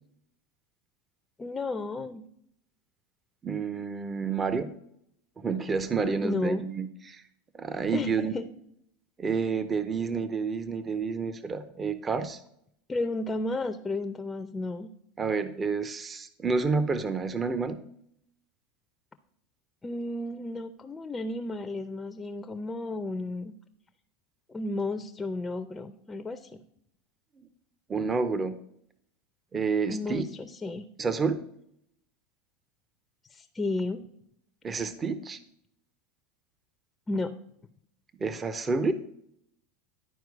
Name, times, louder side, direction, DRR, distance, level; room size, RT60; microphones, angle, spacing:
voice 1, 1.4-2.3 6.2-6.7 7.9-8.5 12.9-14.9 19.8-23.5 24.5-26.6 29.9-30.9 33.3-34.1 37.1-37.3, left 2 dB, 15° left, 8 dB, 0.5 m, -33 dB
voice 2, 3.4-4.7 5.4-7.2 7.5-8.3 9.2-12.4 15.2-17.8 27.9-28.5 29.5-30.3 31.0-31.4 34.6-35.4 38.2-38.9, right 4 dB, 25° right, 11 dB, 0.6 m, -29 dB
11.0 x 4.5 x 4.7 m, 0.72 s
supercardioid pair, 115°, 0 cm